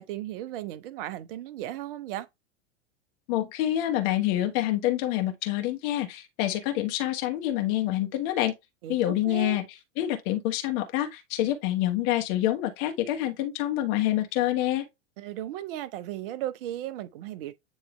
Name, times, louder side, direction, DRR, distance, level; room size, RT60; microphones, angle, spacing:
voice 1, 0.0-2.3 8.8-9.6 15.2-17.5, right 13 dB, 50° right, 0.8 m, -36 dB
voice 2, 3.3-8.5 8.9-9.6 10.0-14.9, left 13 dB, 45° left, 1.3 m, -27 dB
9.5 x 3.2 x 3.1 m
figure-of-eight pair, 95°, 36 cm